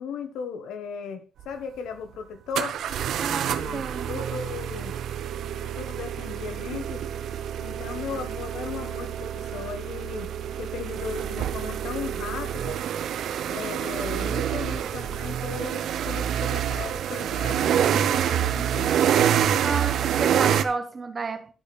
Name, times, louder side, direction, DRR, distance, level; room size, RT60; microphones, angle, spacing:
voice 1, 0.0-2.8 3.5-5.0 5.7-7.0 7.6-12.8 13.5-19.1, left 6 dB, 80° left, 1.4 m, -37 dB
sound 1, 1.4-1.5 2.5-20.6, right 9 dB, 70° right, 0.7 m, -27 dB
voice 2, 3.2-4.2 19.6-21.5, right 4 dB, 35° right, 1.3 m, -31 dB
11.0 x 5.2 x 4.3 m
cardioid pair, 90°, 0 cm